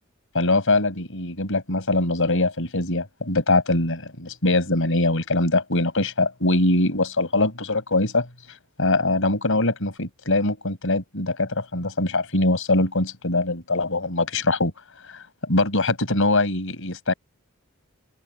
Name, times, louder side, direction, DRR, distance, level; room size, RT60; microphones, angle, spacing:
voice 1, 0.3-8.3 8.8-14.7 15.1-17.1, left 2 dB, 65° left, 6.9 m, -22 dB
open air
head